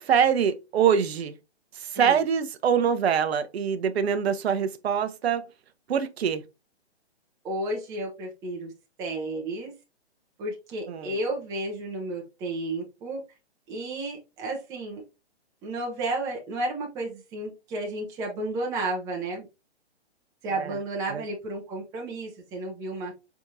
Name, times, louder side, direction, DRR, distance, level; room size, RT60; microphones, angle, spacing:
voice 1, 0.0-1.3 1.7-5.4 5.9-6.4 10.9-11.1 20.6-20.8 21.1-21.2, right 7 dB, 65° right, 0.6 m, -24 dB
voice 2, 7.4-8.7 9.0-9.7 10.4-13.2 13.7-15.0 15.6-19.5 20.4-23.1, right 2 dB, 10° right, 0.5 m, -32 dB
4.6 x 3.5 x 2.6 m
hypercardioid pair, 145°, 33 cm